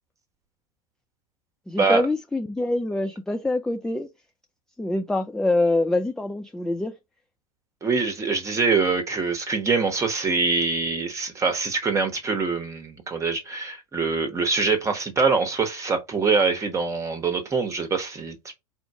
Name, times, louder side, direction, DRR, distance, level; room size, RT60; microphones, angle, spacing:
voice 1, 1.7-4.1 4.8-7.0, left 2 dB, 5° left, 0.4 m, -25 dB
voice 2, 7.8-18.5, right 4 dB, 15° right, 1.2 m, -24 dB
4.5 x 2.5 x 4.6 m
figure-of-eight pair, 90°, 18 cm